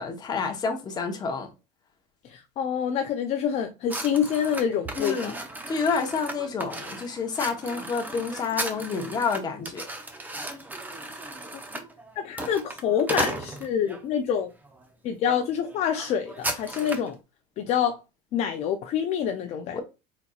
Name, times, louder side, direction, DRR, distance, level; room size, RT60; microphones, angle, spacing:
voice 1, 0.0-1.5 5.0-5.4 5.7-9.9, left 5 dB, 25° left, 1.0 m, -29 dB
voice 2, 2.2-5.3 12.2-14.5 15.0-17.2 17.6-18.0 18.3-19.8, left 8 dB, 45° left, 0.5 m, -27 dB
sound 1, 3.9-14.0 14.6-14.9 15.2-15.4 15.6-17.1, right 2 dB, 10° right, 0.7 m, -35 dB
4.4 x 4.0 x 2.3 m
supercardioid pair, 135°, 16 cm